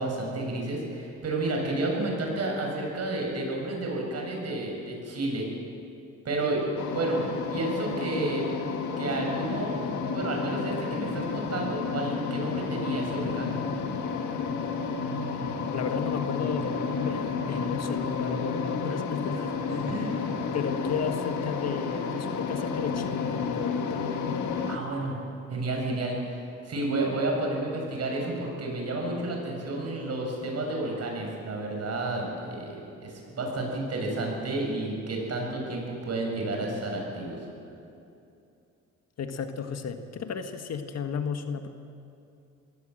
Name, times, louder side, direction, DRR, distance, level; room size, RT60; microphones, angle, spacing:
voice 1, 0.0-5.5 6.2-8.5 9.0-9.8 10.1-13.5 19.9-20.2 24.6-25.1 25.5-37.4, right 2 dB, 55° right, 0 dB, 6.9 m, -31 dB
sound 1, 6.8-24.8, left 5 dB, 75° left, 1.9 m, -31 dB
voice 2, 15.7-19.9 20.5-24.0 39.2-41.7, left 6 dB, 55° left, 7 dB, 1.6 m, -33 dB
22.5 x 16.5 x 7.9 m, 2.7 s
cardioid pair, 90°, 30 cm